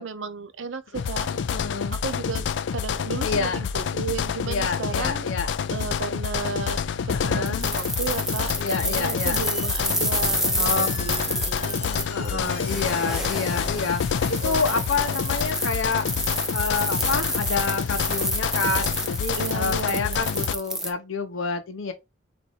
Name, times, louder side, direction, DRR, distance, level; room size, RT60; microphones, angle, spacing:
voice 1, 0.0-1.3 1.9-5.2 5.7-13.2 14.4-15.2 19.4-20.3, right 4 dB, 75° right, 0.6 m, -34 dB
sound 1, 0.9-20.5, left 7 dB, 65° left, 0.3 m, -28 dB
voice 2, 1.3-2.0 3.2-3.7 4.5-5.5 7.1-7.6 8.6-9.4 10.6-11.4 12.1-14.0 14.3-21.9, left 4 dB, 90° left, 0.8 m, -28 dB
sound 2, 7.5-20.9, equal, ahead, 0.5 m, -29 dB
Squeak, 8.6-9.0 9.3-14.9, left 4 dB, 35° left, 1.0 m, -43 dB
4.1 x 2.6 x 4.4 m
head